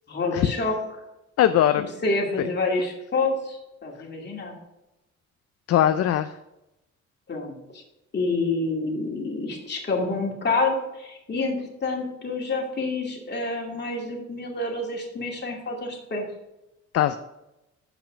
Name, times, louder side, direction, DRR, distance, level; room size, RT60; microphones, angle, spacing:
voice 1, 0.1-0.8 1.8-4.5 7.3-7.8 8.1-16.2, left 3 dB, 35° left, -1 dB, 2.4 m, -28 dB
voice 2, 1.4-1.8 2.4-2.5 5.7-6.3 16.9-17.2, left 11 dB, 55° left, 10 dB, 0.5 m, -20 dB
7.2 x 5.7 x 5.1 m, 0.93 s
cardioid pair, 90°, 30 cm